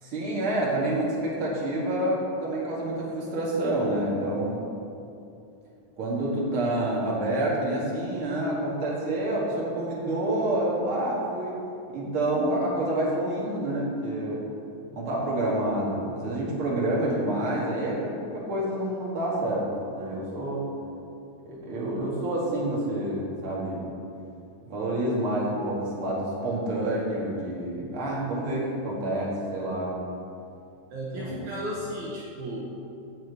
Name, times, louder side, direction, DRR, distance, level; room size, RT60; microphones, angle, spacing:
voice 1, 0.0-4.6 6.0-11.6 11.9-14.4 14.9-20.7 21.4-23.9 24.7-30.0 31.2-31.6, right 1 dB, 45° right, -4 dB, 2.9 m, -28 dB
voice 2, 30.9-32.7, equal, 70° right, -5 dB, 2.5 m, -34 dB
14.0 x 4.6 x 8.5 m, 2.6 s
omnidirectional pair, 3.8 m